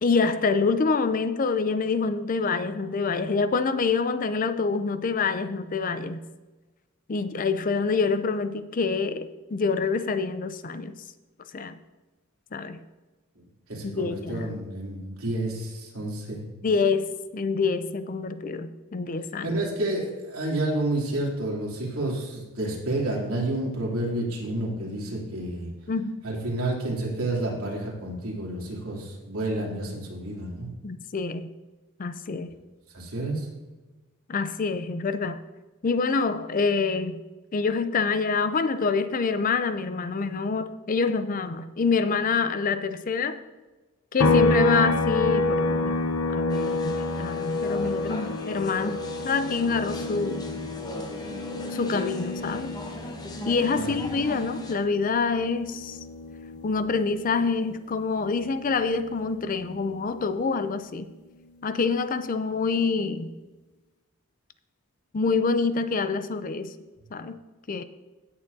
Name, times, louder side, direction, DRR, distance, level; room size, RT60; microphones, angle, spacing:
voice 1, 0.0-6.2 7.1-10.9 11.5-11.8 12.5-12.8 13.8-14.5 16.6-19.6 25.9-26.1 30.8-31.5 32.0-32.5 34.3-35.4 35.8-37.2 37.5-43.4 44.1-46.0 46.3-49.0 49.2-50.5 51.7-52.8 53.5-56.0 56.6-61.1 61.6-63.3 65.1-66.7 67.1-67.4 67.7-67.8, left 4 dB, 40° left, 11 dB, 0.4 m, -26 dB
voice 2, 13.4-16.4 19.4-25.7 26.2-30.7 32.9-33.5 53.7-53.9, right 1 dB, 75° right, -3 dB, 2.9 m, -30 dB
sound 1, 44.2-57.7 58.1-60.3, left 2 dB, 75° left, 0.7 m, -29 dB
sound 2, 46.5-54.8, left 1 dB, 15° left, 0.9 m, -39 dB
16.5 x 6.9 x 2.7 m, 1.2 s
head